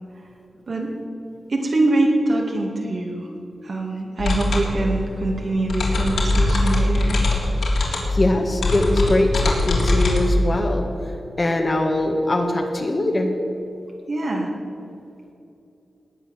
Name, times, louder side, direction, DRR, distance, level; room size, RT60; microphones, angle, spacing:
voice 1, 1.5-3.3 3.6-7.2 14.1-14.5, right 2 dB, 50° right, -1 dB, 2.3 m, -23 dB
sound 1, 4.2-10.2, left 2 dB, 75° left, 3.5 m, -21 dB
voice 2, 8.1-10.9 11.4-13.3, left 1 dB, 30° left, 2 dB, 1.5 m, -21 dB
20.0 x 8.7 x 7.3 m, 2.7 s
wide cardioid pair, 160°, 0 cm